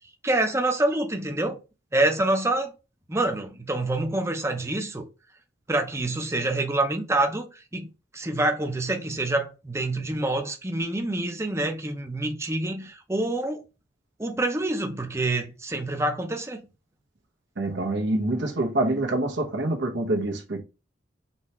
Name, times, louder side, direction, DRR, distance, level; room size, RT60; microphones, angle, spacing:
voice 1, 0.2-1.6 1.9-2.7 3.1-5.0 5.7-7.9 8.1-13.6 14.2-16.6, right 2 dB, 15° right, 0.6 m, -26 dB
voice 2, 17.6-20.6, right 2 dB, 75° right, 1.1 m, -26 dB
4.2 x 3.3 x 3.0 m
head